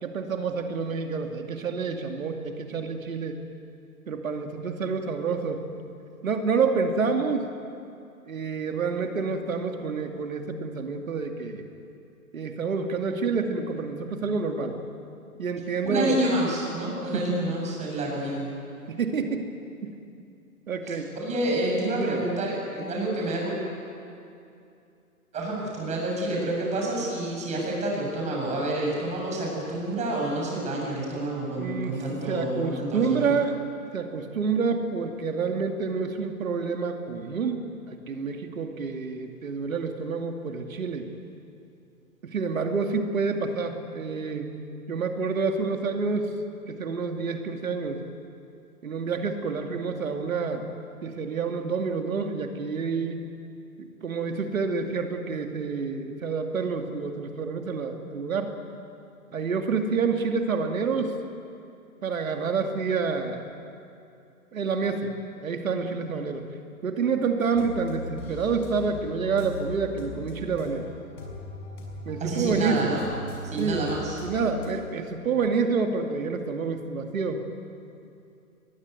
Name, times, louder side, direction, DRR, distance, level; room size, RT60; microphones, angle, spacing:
voice 1, 0.0-3.4 4.1-5.8 6.2-7.5 8.3-11.6 12.3-14.8 15.4-16.2 17.1-17.4 18.9-19.5 19.8-20.0 20.7-21.1 22.0-22.2 31.6-33.6 33.9-41.1 42.2-44.5 44.9-46.3 46.7-48.0 48.8-50.7 51.0-53.2 53.8-58.5 59.3-61.2 62.0-63.5 64.5-65.1 65.4-66.4 66.8-70.9 72.1-72.9 73.6-77.4, right 5 dB, 65° right, 4 dB, 2.5 m, -28 dB
voice 2, 15.8-18.5 20.9-23.6 25.3-33.3 72.2-73.1 73.4-74.2, right 1 dB, 15° right, -2 dB, 7.4 m, -28 dB
sound 1, 67.5-74.7, left 1 dB, 45° left, 6.7 m, -39 dB
24.0 x 21.5 x 9.4 m, 2.6 s
figure-of-eight pair, 130°, 45 cm